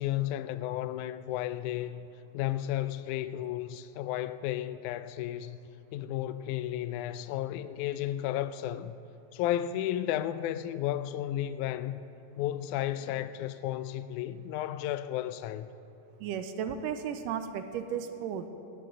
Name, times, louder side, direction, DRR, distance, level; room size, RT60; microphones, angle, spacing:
voice 1, 0.0-2.1 2.3-5.6 5.9-9.0 9.3-12.0 12.4-15.7, left 12 dB, 80° left, 1.8 m, -33 dB
voice 2, 16.2-18.5, right 8 dB, 80° right, 2.2 m, -34 dB
20.0 x 13.5 x 3.8 m
omnidirectional pair, 3.9 m